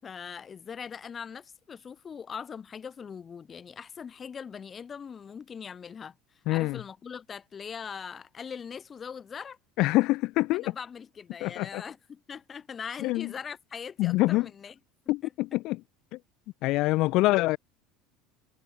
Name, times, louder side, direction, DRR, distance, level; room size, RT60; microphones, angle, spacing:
voice 1, 0.0-9.6 10.5-14.7 15.2-15.3, left 6 dB, 30° left, 6.7 m, -41 dB
voice 2, 6.5-6.8 9.8-10.7 11.4-11.8 13.0-13.3 14.0-14.5 15.1-15.8 16.1-16.2 16.6-17.6, left 20 dB, 65° left, 0.6 m, -25 dB
supercardioid pair, 110°, 0 cm